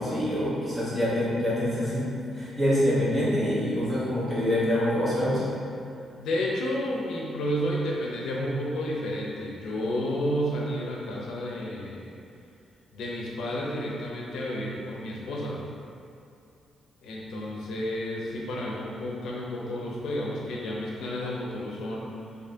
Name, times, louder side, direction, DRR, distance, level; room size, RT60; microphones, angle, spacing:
voice 1, 0.0-2.1 2.3-5.5, left 1 dB, 5° right, -11 dB, 1.1 m, -25 dB
voice 2, 6.2-12.1 12.9-15.6 17.0-22.2, equal, 80° left, -3 dB, 0.6 m, -31 dB
4.3 x 2.7 x 2.7 m, 2.5 s
cardioid pair, 165°, 0 cm